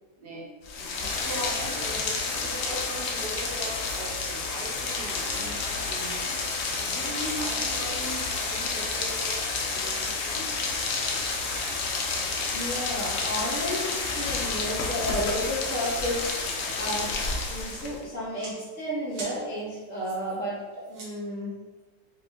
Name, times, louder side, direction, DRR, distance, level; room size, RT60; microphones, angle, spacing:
voice 1, 0.2-6.3 6.8-10.5 19.3-19.5, right 2 dB, 75° right, -1 dB, 1.3 m, -39 dB
Rain, 0.6-18.0, left 4 dB, 85° left, 0.5 m, -30 dB
sound 1, 3.6-10.1 10.6-12.1 12.4-16.8 17.1-20.4 20.8-21.1, right 2 dB, 60° right, 1.3 m, -49 dB
voice 2, 12.5-17.1 17.4-21.5, equal, 55° left, -12 dB, 1.6 m, -32 dB
4.3 x 3.7 x 2.4 m, 1.3 s
omnidirectional pair, 1.7 m